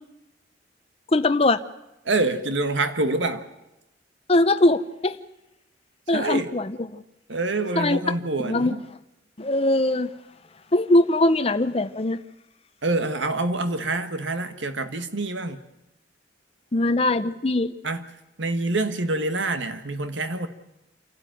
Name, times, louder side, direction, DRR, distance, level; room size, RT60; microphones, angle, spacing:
voice 1, 1.1-1.6 4.3-5.2 6.1-7.0 7.8-8.0 8.4-8.8 9.4-10.1 10.7-12.2 16.7-17.7, left 2 dB, 30° left, 0.7 m, -21 dB
voice 2, 2.0-3.5 6.1-6.5 7.3-8.8 12.8-15.6 17.8-18.0 18.4-20.5, right 2 dB, 80° right, 1.6 m, -26 dB
28.0 x 12.0 x 9.2 m
head